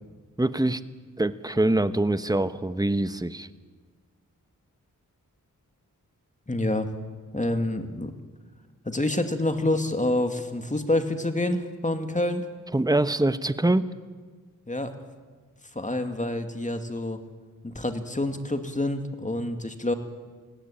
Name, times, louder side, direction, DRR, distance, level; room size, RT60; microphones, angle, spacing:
voice 1, 0.4-0.8 1.2-3.5 12.7-13.9, right 2 dB, 10° right, 13 dB, 1.0 m, -24 dB
voice 2, 6.5-6.9 7.3-8.1 8.8-12.5 14.7-14.9 15.7-17.2 17.6-19.9, left 1 dB, 20° left, 7 dB, 2.4 m, -27 dB
21.0 x 16.5 x 8.9 m, 1.4 s
cardioid pair, 55°, 33 cm